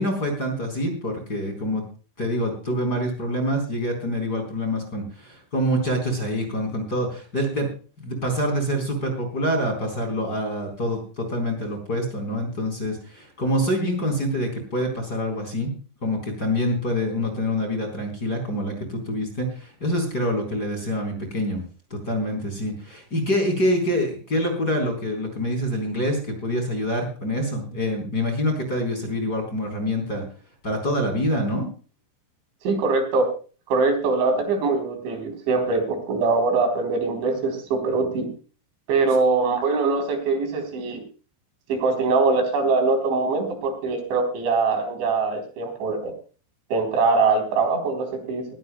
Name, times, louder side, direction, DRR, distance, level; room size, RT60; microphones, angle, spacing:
voice 1, 0.0-1.8 2.2-7.7 8.0-15.7 16.0-21.6 21.9-30.2 30.6-31.7, equal, 20° left, 3 dB, 4.4 m, -26 dB
voice 2, 32.6-33.3 33.7-38.3 38.9-41.0 41.7-46.1 46.7-48.5, right 4 dB, 75° right, 5 dB, 6.2 m, -22 dB
21.0 x 16.0 x 2.3 m, 0.37 s
omnidirectional pair, 5.3 m